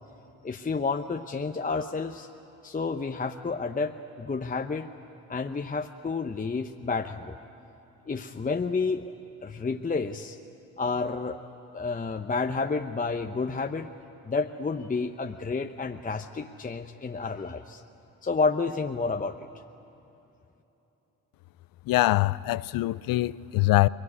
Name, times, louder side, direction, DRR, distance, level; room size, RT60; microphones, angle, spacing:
voice 1, 0.4-2.3 2.6-4.9 5.3-7.4 8.1-9.0 9.4-10.4 10.8-11.5 11.7-13.9 14.3-17.8 18.2-19.4, left 4 dB, 25° left, 0.9 m, -30 dB
voice 2, 21.9-23.9, left 17 dB, 85° left, 0.5 m, -23 dB
23.0 x 21.0 x 9.7 m
cardioid pair, 80°, 33 cm